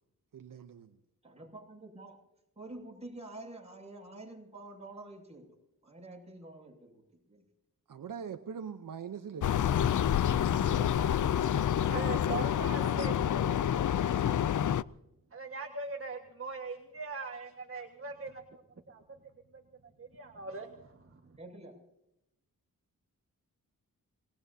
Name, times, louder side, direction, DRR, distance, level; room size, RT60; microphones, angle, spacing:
voice 1, 0.3-0.9 7.9-10.0, right 7 dB, 70° right, 0.9 m, -43 dB
voice 2, 1.2-2.2 2.6-5.4 5.8-7.4 10.4-11.2 11.7-13.1 21.4-21.8, right 2 dB, 20° right, 7.2 m, -48 dB
sound 1, 9.4-14.8, left 9 dB, 65° left, 0.5 m, -28 dB
voice 3, 11.9-13.5 15.3-18.6 18.9-19.0 20.0-21.4, right 4 dB, 40° right, 1.6 m, -41 dB
26.5 x 19.5 x 2.8 m
wide cardioid pair, 90°, 34 cm